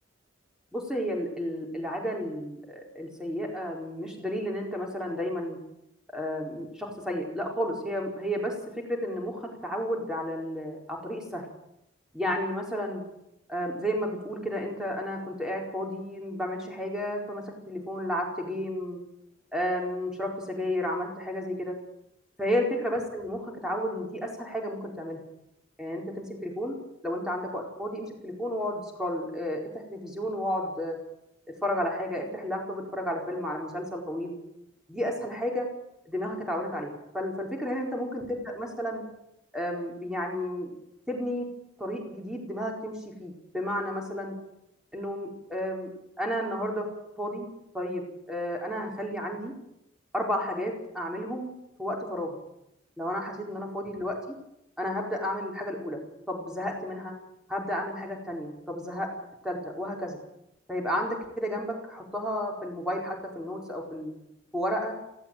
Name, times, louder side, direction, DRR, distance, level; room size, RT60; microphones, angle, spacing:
voice 1, 0.7-5.6 6.1-8.5 8.9-11.5 12.1-13.0 13.5-19.0 19.5-21.7 22.4-25.2 25.8-31.0 31.6-34.3 34.9-35.7 36.0-39.0 39.5-40.7 41.1-41.5 41.8-44.3 44.9-45.9 46.2-46.9 47.2-47.5 47.7-49.5 50.1-51.5 51.8-52.4 53.0-54.2 54.8-56.0 56.3-57.1 57.5-59.1 59.4-60.2 60.7-64.1 64.5-64.9, equal, 5° right, 0 dB, 4.8 m, -32 dB
18.5 x 16.5 x 9.3 m, 0.82 s
head